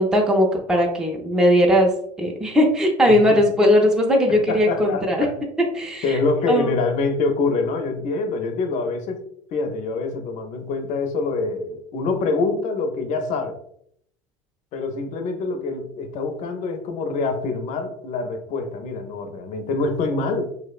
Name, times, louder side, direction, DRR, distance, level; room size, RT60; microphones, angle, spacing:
voice 1, 0.0-1.9 2.2-5.3 5.7-6.2 6.5-6.8, equal, 5° right, 0 dB, 0.4 m, -18 dB
voice 2, 3.1-3.5 4.3-5.3 6.0-9.2 9.5-13.6 14.7-20.5, left 3 dB, 50° left, 6 dB, 0.5 m, -25 dB
2.8 x 2.0 x 2.3 m, 0.69 s
supercardioid pair, 100°, 16 cm